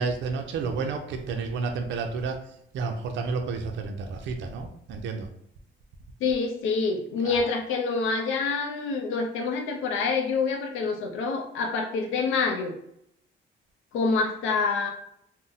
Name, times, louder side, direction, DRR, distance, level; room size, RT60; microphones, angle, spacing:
voice 1, 0.0-5.3 7.2-7.5, right 4 dB, 70° right, 4 dB, 0.4 m, -31 dB
voice 2, 6.2-12.7 13.9-14.9, left 4 dB, 85° left, 3 dB, 0.5 m, -26 dB
2.6 x 2.0 x 3.8 m, 0.72 s
cardioid pair, 90°, 20 cm